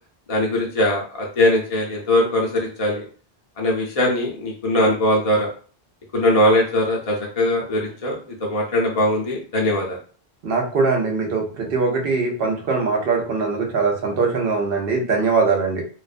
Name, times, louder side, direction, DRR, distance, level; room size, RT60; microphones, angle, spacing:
voice 1, 0.3-3.1 3.6-5.5 6.1-10.0, left 1 dB, 45° left, -2 dB, 0.5 m, -21 dB
voice 2, 10.4-15.8, right 4 dB, 70° right, 1 dB, 0.9 m, -21 dB
2.4 x 2.1 x 2.4 m, 0.41 s
omnidirectional pair, 1.0 m